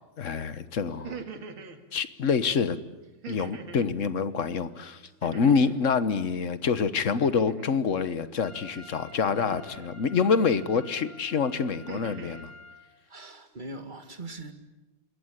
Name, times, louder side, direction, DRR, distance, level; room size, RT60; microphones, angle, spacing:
voice 1, 0.2-1.2 1.9-2.8 3.3-12.5, left 5 dB, 45° left, 1.3 m, -26 dB
sound 1, 0.9-1.8 3.2-3.9 5.2-5.9 7.2-7.8 9.2-9.9 10.7-11.1 11.6-12.4, right 6 dB, 75° right, 2.9 m, -43 dB
voice 2, 4.9-5.3 12.2-12.4 13.0-14.5, right 2 dB, 25° right, 2.1 m, -42 dB
Trumpet, 8.4-12.8, left 1 dB, 5° left, 7.6 m, -49 dB
27.5 x 22.0 x 9.8 m
omnidirectional pair, 2.3 m